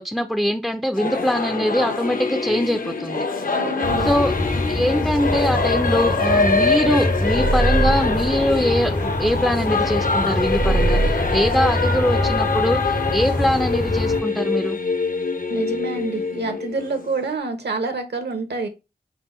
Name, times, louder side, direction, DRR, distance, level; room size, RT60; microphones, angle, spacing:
voice 1, 0.0-3.3 4.0-4.3 4.7-14.8, equal, ahead, 0.4 m, -22 dB
Singing / Musical instrument, 0.9-17.3, left 4 dB, 50° left, 0.6 m, -24 dB
voice 2, 3.5-4.1 15.5-18.7, right 3 dB, 70° right, 0.9 m, -27 dB
sound 1, 3.8-14.2, left 1 dB, 85° left, 1.6 m, -26 dB
sound 2, 7.2-9.4 10.4-12.4, right 3 dB, 45° right, 0.6 m, -24 dB
5.4 x 2.2 x 4.0 m
wide cardioid pair, 75°, 18 cm